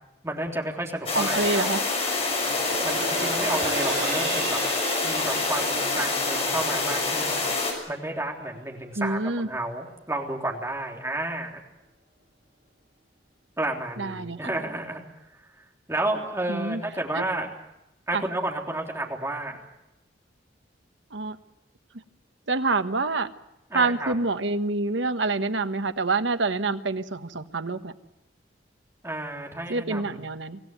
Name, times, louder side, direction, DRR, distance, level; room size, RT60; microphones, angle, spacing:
voice 1, 0.2-1.7 2.8-4.6 5.0-7.4 7.9-11.6 13.6-15.0 15.9-17.5 18.1-19.6 23.7-24.1 29.0-30.2, right 1 dB, 15° right, 0 dB, 3.5 m, -31 dB
sound 1, 1.1-7.7, left 3 dB, 35° left, 6.2 m, -26 dB
voice 2, 1.1-1.8 9.0-9.5 14.0-14.5 16.5-16.8 17.1-17.2 18.1-18.2 21.1-21.4 22.5-23.3 23.7-27.9 29.7-30.6, right 3 dB, 85° right, 10 dB, 1.3 m, -26 dB
sound 2, 2.4-8.9 9.4-9.5, right 3 dB, 40° right, 7.2 m, -35 dB
26.0 x 16.5 x 9.2 m, 0.92 s
head